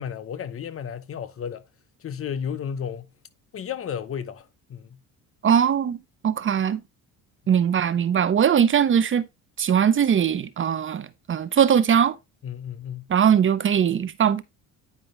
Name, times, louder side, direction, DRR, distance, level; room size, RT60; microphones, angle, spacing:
voice 1, 0.0-1.6 2.0-3.1 3.5-5.0 12.4-13.1, left 8 dB, 40° left, 0.9 m, -33 dB
voice 2, 5.4-6.0 6.2-6.8 7.5-9.2 9.6-12.2 13.1-14.4, right 8 dB, 35° right, 0.7 m, -20 dB
9.6 x 5.2 x 3.2 m
cardioid pair, 110°, 34 cm